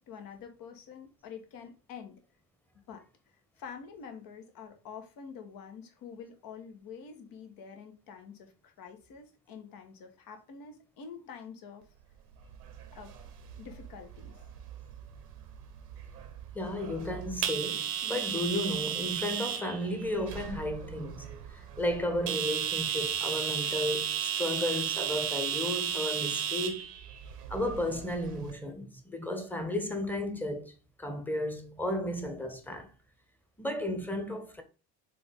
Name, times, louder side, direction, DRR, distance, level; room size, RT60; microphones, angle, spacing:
voice 1, 0.1-2.2 2.9-3.0 3.6-11.9 12.9-13.1 13.6-14.4, left 6 dB, 45° left, 1.6 m, -47 dB
sound 1, 12.4-28.5, right 9 dB, 70° right, 1.2 m, -35 dB
voice 2, 16.5-26.9 27.5-32.9 33.6-34.6, left 1 dB, 5° left, 1.3 m, -34 dB
6.8 x 3.9 x 3.5 m
figure-of-eight pair, 60°, 48 cm